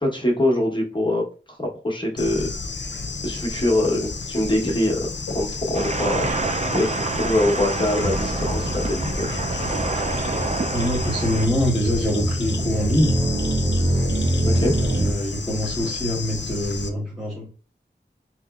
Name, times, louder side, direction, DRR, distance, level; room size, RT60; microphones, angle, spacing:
voice 1, 0.0-2.5 3.2-6.3 6.7-9.3 14.4-14.8, left 1 dB, 25° left, -1 dB, 1.1 m, -23 dB
Bird / Insect, 2.2-16.9, left 4 dB, 65° left, 0.5 m, -32 dB
sound 1, 5.7-11.5, right 3 dB, 35° right, 0.4 m, -28 dB
sound 2, 8.0-15.1, right 1 dB, 70° right, 0.9 m, -25 dB
voice 2, 10.7-13.2 14.8-17.5, equal, ahead, -6 dB, 1.2 m, -24 dB
4.2 x 2.9 x 2.4 m, 0.36 s
wide cardioid pair, 45°, 20 cm